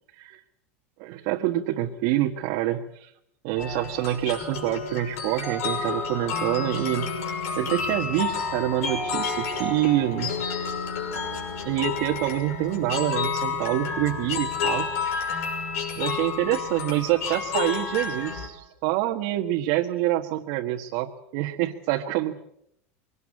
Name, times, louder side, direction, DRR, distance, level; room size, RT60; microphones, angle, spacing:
voice 1, 1.0-3.1 3.4-7.1 7.5-10.4 11.6-14.9 16.0-22.4, right 14 dB, 60° right, 2 dB, 1.5 m, -26 dB
sound 1, 3.6-18.5, left 5 dB, 80° left, 5.9 m, -30 dB
23.0 x 18.0 x 8.5 m, 0.76 s
supercardioid pair, 135°, 8 cm